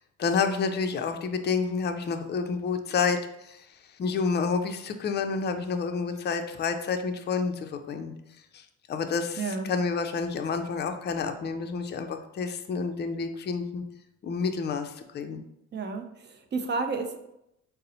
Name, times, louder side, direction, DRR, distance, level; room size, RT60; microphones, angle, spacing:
voice 1, 0.2-8.1 8.5-13.8 14.2-15.4, left 5 dB, 35° left, 7 dB, 0.4 m, -29 dB
voice 2, 9.4-9.7 15.7-17.2, right 4 dB, 35° right, 5 dB, 0.5 m, -31 dB
3.9 x 2.0 x 3.9 m, 0.81 s
cardioid pair, 90°, 30 cm